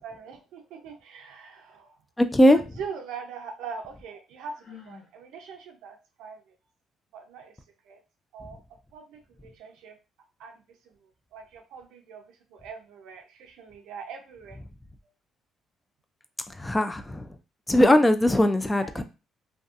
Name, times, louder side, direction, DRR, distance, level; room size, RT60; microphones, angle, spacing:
voice 1, 0.0-1.9 2.5-6.5 7.1-7.6 7.8-8.0 8.3-8.6 8.9-10.0 10.4-14.6 18.8-19.0, right 5 dB, 80° right, 4 dB, 0.5 m, -42 dB
voice 2, 2.2-2.6 16.6-17.3 17.7-19.0, left 1 dB, 15° left, 9 dB, 0.3 m, -20 dB
Sigh, 4.5-5.1, left 7 dB, 55° left, 1.1 m, -48 dB
2.6 x 2.2 x 2.4 m, 0.30 s
cardioid pair, 90°, 0 cm